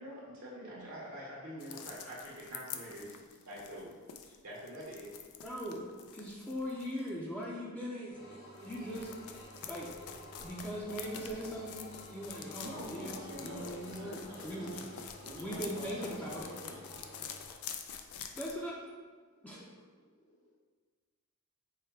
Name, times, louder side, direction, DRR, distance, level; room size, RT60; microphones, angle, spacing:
voice 1, 0.0-3.9 4.2-5.1 8.6-8.7 12.6-14.9 15.2-16.8 18.0-18.1, equal, 70° right, -6 dB, 0.9 m, -46 dB
sound 1, 1.6-7.1 8.6-18.6, left 8 dB, 85° left, 0.4 m, -47 dB
voice 2, 5.4-5.9 6.1-9.1 9.7-9.9 10.4-14.7 15.4-16.5 18.3-18.8 19.4-19.7, equal, 5° left, -5 dB, 0.5 m, -40 dB
Engine, 8.1-17.5, equal, 50° left, 1.4 m, -51 dB
Telephone, 8.9-9.2 9.6-9.9 10.3-10.6 11.0-11.3 11.7-12.0 12.5-12.7 13.2-13.5 13.9-14.2 14.6-14.9, left 1 dB, 35° right, 0.7 m, -58 dB
voice 3, 19.2-20.5, equal, 70° left, -11 dB, 1.3 m, -71 dB
4.8 x 2.2 x 4.5 m, 1.4 s
head